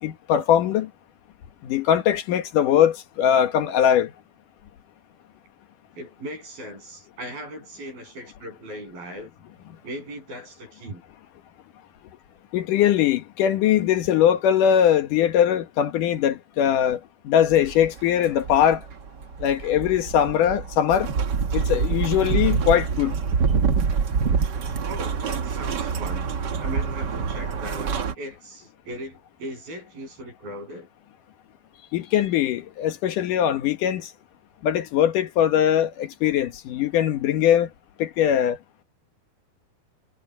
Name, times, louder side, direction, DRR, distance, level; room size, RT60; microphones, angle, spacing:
voice 1, 0.0-0.9 1.6-4.1 12.5-18.8 19.4-21.1 21.5-23.1 31.9-34.1 34.6-37.7 38.0-38.6, left 10 dB, 70° left, 2.7 m, -21 dB
voice 2, 6.0-9.3 9.8-11.0 24.9-26.3 26.6-30.9, right 1 dB, 90° right, 10.0 m, -38 dB
sound 1, 17.5-28.1, right 5 dB, 70° right, 1.0 m, -26 dB
omnidirectional pair, 4.1 m